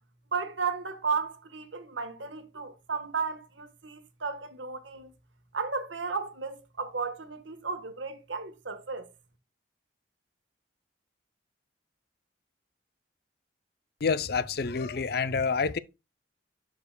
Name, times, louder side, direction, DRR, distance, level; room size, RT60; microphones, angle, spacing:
voice 1, 0.3-5.1 5.5-9.1, right 5 dB, 75° right, 1.2 m, -34 dB
voice 2, 14.0-15.8, left 5 dB, 50° left, 0.5 m, -28 dB
11.5 x 4.8 x 2.2 m
head